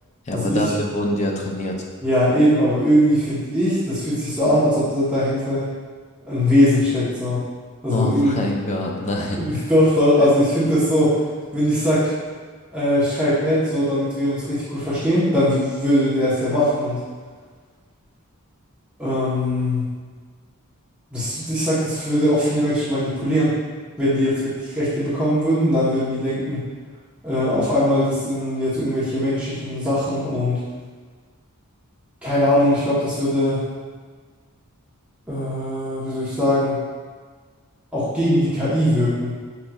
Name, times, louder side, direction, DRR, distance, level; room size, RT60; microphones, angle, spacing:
voice 1, 0.3-1.8 7.9-9.7, left 1 dB, 30° left, 0 dB, 0.5 m, -25 dB
voice 2, 2.0-5.7 6.3-7.4 7.8-8.4 9.3-11.2 11.5-12.1 12.7-17.0 19.0-19.8 21.1-23.6 24.0-26.7 27.2-30.6 32.2-33.7 35.3-36.8 37.9-39.4, equal, 5° right, -12 dB, 0.9 m, -20 dB
5.2 x 3.0 x 2.3 m, 1.5 s
head